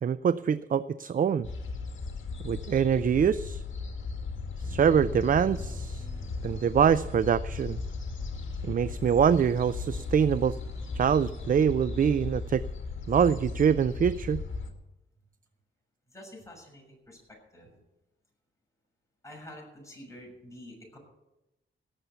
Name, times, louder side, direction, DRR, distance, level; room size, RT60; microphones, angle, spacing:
voice 1, 0.0-1.5 2.4-3.6 4.6-6.1 6.4-7.8 8.6-10.6 10.9-12.6 13.1-14.4, right 7 dB, 40° right, 16 dB, 0.4 m, -24 dB
sound 1, 1.4-14.7, left 4 dB, 65° left, 1.9 m, -36 dB
sound 2, 4.6-12.6, equal, 15° right, 3.6 m, -49 dB
voice 2, 16.1-17.8 19.2-21.0, left 1 dB, 15° left, -1 dB, 6.6 m, -48 dB
17.5 x 7.2 x 6.9 m, 0.95 s
cardioid pair, 90°, 21 cm